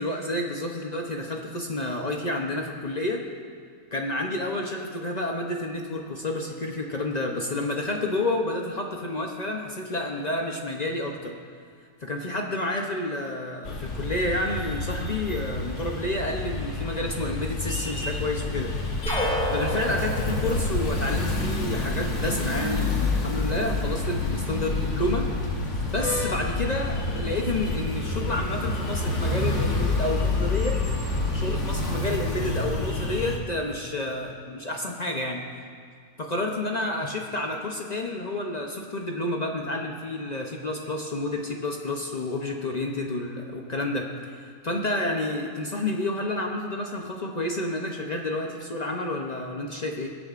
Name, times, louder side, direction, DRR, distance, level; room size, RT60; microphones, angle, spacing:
voice 1, 0.0-3.2 3.9-11.3 12.0-18.7 19.5-25.3 25.9-30.8 31.3-35.4 36.2-50.1, left 1 dB, 40° left, 1 dB, 0.7 m, -30 dB
sound 1, 13.6-33.4, left 2 dB, 55° left, 1.5 m, -28 dB
sound 2, 19.1-21.9, equal, 5° left, 2.0 m, -30 dB
23.5 x 8.6 x 2.5 m, 2.1 s
omnidirectional pair, 1.6 m